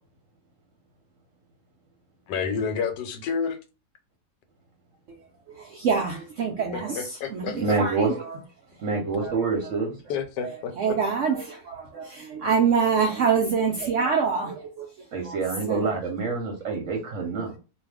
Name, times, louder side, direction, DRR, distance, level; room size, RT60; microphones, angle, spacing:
voice 1, 2.3-3.6 6.7-7.8 9.0-9.1 10.1-11.0, left 6 dB, 80° left, 1.2 m, -30 dB
voice 2, 5.5-7.0 7.3-8.2 9.2-9.3 10.8-14.9 15.2-15.4 15.7-15.9, right 6 dB, 85° right, 0.6 m, -25 dB
voice 3, 7.6-8.1 8.8-9.9 15.1-17.5, right 4 dB, 60° right, 0.9 m, -26 dB
2.6 x 2.4 x 3.3 m
omnidirectional pair, 1.9 m